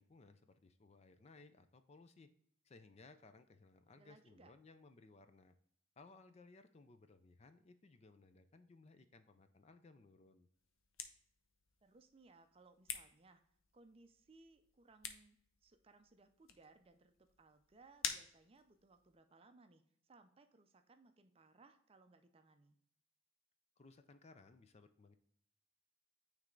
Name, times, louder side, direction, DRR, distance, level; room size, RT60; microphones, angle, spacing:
voice 1, 0.0-2.3 2.6-5.5 6.0-10.5 23.8-25.2, left 3 dB, 30° left, 9 dB, 0.4 m, -62 dB
voice 2, 4.0-4.5 11.8-13.4 13.7-22.8, right 3 dB, 30° right, 8 dB, 0.5 m, -65 dB
sound 1, 10.5-19.2, left 7 dB, 90° left, 0.7 m, -50 dB
9.1 x 3.3 x 3.8 m, 0.66 s
head